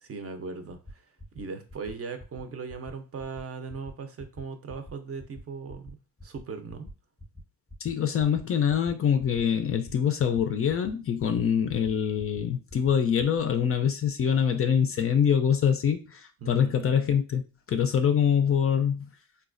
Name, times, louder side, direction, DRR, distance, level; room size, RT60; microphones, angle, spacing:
voice 1, 0.0-6.0 6.2-6.9 16.4-16.9, right 5 dB, 40° right, 0.5 m, -39 dB
sound 1, 0.8-0.9 1.2-1.4 1.7-1.9 2.2-2.4 2.7-2.9 3.2-3.4 3.7-3.9 4.2-4.4 4.7-4.9 5.2-5.4 5.7-5.9 6.2-6.4 6.7-6.9 7.2-7.4 7.7-7.9 8.2-8.4 8.7-8.9 9.2-9.4 9.7-9.9 10.2-10.4 10.7-10.9 11.2-11.4 11.7-11.9 12.2-12.4 12.7-12.9 13.2-13.4, equal, 5° left, 0.7 m, -45 dB
voice 2, 7.8-17.4 17.7-19.1, left 8 dB, 40° left, 0.4 m, -24 dB
4.0 x 2.3 x 2.4 m
cardioid pair, 105°, 36 cm